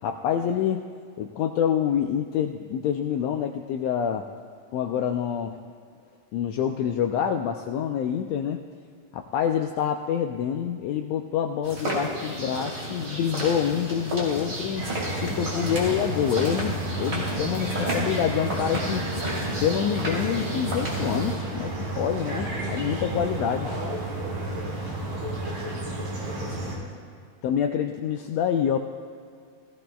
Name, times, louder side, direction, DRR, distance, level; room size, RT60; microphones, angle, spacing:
voice 1, 0.0-0.9 1.2-4.3 4.7-5.6 6.3-8.6 9.1-19.1 19.5-23.7 27.4-28.8, left 9 dB, 80° left, 4 dB, 1.5 m, -27 dB
sound 1, 11.6-21.4, right 1 dB, 25° right, 3.2 m, -32 dB
sound 2, 14.8-26.8, right 1 dB, 45° right, 2.8 m, -32 dB
voice 2, 15.2-15.9 22.1-25.9 26.2-27.0, right 3 dB, 80° right, -3 dB, 3.5 m, -43 dB
18.0 x 15.5 x 2.3 m, 2.3 s
omnidirectional pair, 3.5 m